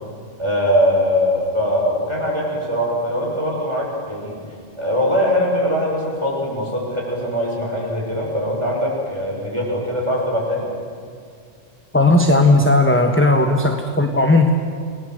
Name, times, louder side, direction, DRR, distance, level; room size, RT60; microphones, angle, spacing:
voice 1, 0.4-4.4 4.8-10.7, equal, 25° right, -3 dB, 6.9 m, -21 dB
voice 2, 11.9-14.5, left 2 dB, 10° left, 4 dB, 1.3 m, -15 dB
28.0 x 19.5 x 8.0 m, 2.1 s
omnidirectional pair, 1.3 m